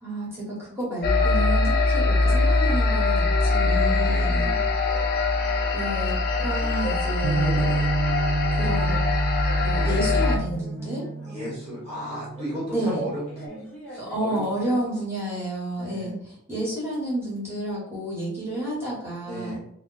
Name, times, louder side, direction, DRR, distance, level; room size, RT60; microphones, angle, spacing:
voice 1, 0.0-4.5 5.7-7.9 8.5-9.0 9.6-11.0 12.7-13.0 14.0-19.6, right 1 dB, 10° right, -7 dB, 1.2 m, -30 dB
sound 1, 1.0-10.4, left 3 dB, 40° left, 0.5 m, -22 dB
sound 2, 3.2-4.5 4.9-5.1 5.4-7.3 7.5-9.1 9.4-11.5 12.4-14.3, right 1 dB, 5° left, 0.7 m, -42 dB
voice 2, 3.6-4.7 11.2-15.0 15.8-16.2 19.2-19.6, equal, 30° right, -7 dB, 1.0 m, -35 dB
Bass guitar, 7.2-13.5, right 3 dB, 75° right, 0.4 m, -30 dB
2.9 x 2.2 x 3.8 m, 0.71 s
head